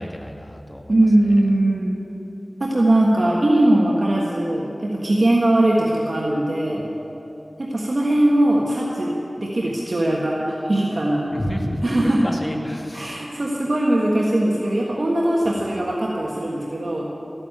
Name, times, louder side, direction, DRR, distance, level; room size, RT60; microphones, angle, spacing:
voice 1, 0.0-0.9 11.3-13.2, equal, 30° left, 2 dB, 1.9 m, -29 dB
voice 2, 0.9-2.0 2.6-6.9 7.6-11.3 11.8-12.2 12.9-17.1, right 1 dB, 65° right, -3 dB, 1.6 m, -20 dB
13.5 x 9.7 x 8.8 m, 3.0 s
wide cardioid pair, 45°, 0 cm